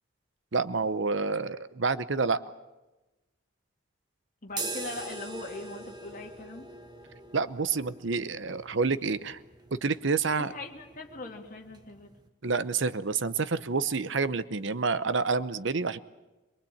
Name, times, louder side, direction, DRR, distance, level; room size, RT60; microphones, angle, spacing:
voice 1, 0.5-2.4 7.3-9.4 9.7-10.5 12.4-16.0, right 4 dB, 65° right, 15 dB, 0.8 m, -28 dB
voice 2, 4.4-6.7 10.4-12.1, left 2 dB, 40° left, 3 dB, 2.5 m, -41 dB
sound 1, 4.5-12.3, right 3 dB, 20° right, 1.4 m, -43 dB
23.5 x 22.5 x 8.6 m, 1.1 s
head